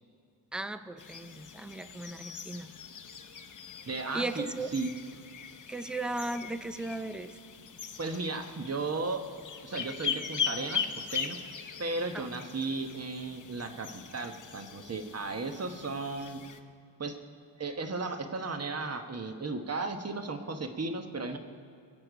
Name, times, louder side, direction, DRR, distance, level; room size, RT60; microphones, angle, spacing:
voice 1, 0.5-2.8 4.1-4.7 5.7-7.4 12.1-12.3, right 2 dB, ahead, 11 dB, 0.4 m, -36 dB
sound 1, 1.0-16.6, left 7 dB, 40° left, 0.8 m, -40 dB
voice 2, 3.9-4.5 4.7-4.9 8.0-9.2 9.6-11.4 11.8-13.9 14.1-16.4 17.0-17.2 17.6-21.4, right 3 dB, 35° right, 6 dB, 1.1 m, -35 dB
21.5 x 8.1 x 5.0 m, 2.4 s
wide cardioid pair, 125°, 45 cm